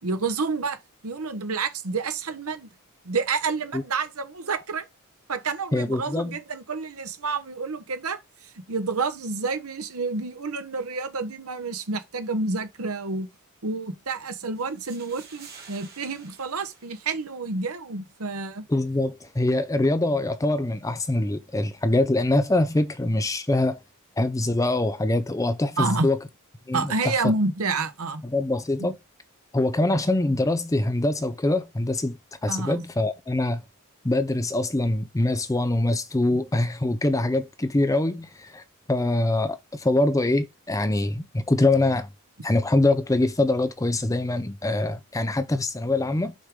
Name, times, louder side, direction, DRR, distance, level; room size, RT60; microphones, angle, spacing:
voice 1, 0.0-2.7 3.0-4.9 5.3-13.3 13.6-18.6 25.8-26.1 26.7-28.2 28.8-28.9 32.5-32.8, right 4 dB, 75° right, 1.0 m, -29 dB
voice 2, 5.7-6.4 18.7-23.8 24.2-26.2 26.7-27.1 28.3-29.0 29.5-32.2 32.4-33.6 34.0-38.6 38.9-42.1 42.4-46.3, left 2 dB, 15° left, 0.5 m, -24 dB
sound 1, 14.5-17.6, right 6 dB, 45° right, 2.8 m, -49 dB
6.4 x 4.8 x 3.7 m
head